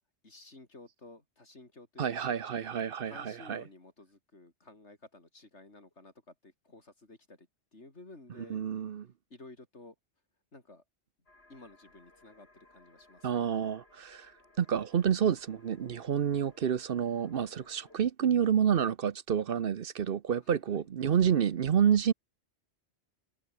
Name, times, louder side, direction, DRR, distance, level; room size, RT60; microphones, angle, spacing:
voice 1, 0.2-2.3 3.0-8.6 9.3-9.9 10.5-10.8 11.5-13.5 20.4-20.9, left 2 dB, 85° left, 4.7 m, -53 dB
voice 2, 2.0-3.6 8.5-9.1 13.2-14.3 14.6-22.1, right 8 dB, 60° right, 0.9 m, -29 dB
sound 1, 11.3-18.0, left 2 dB, 65° left, 5.0 m, -61 dB
omnidirectional pair, 1.1 m